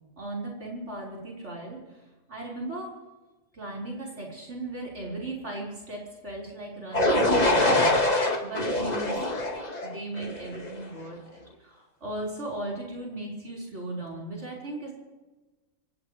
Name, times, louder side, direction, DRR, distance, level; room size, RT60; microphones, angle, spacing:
voice 1, 0.2-2.0 2.3-2.9 3.5-7.9 8.4-9.2 9.8-14.9, right 2 dB, 65° right, -4 dB, 5.6 m, -37 dB
sound 1, 6.9-10.8, left 1 dB, 35° left, 1.9 m, -24 dB
26.0 x 16.0 x 3.4 m, 1.2 s
omnidirectional pair, 1.3 m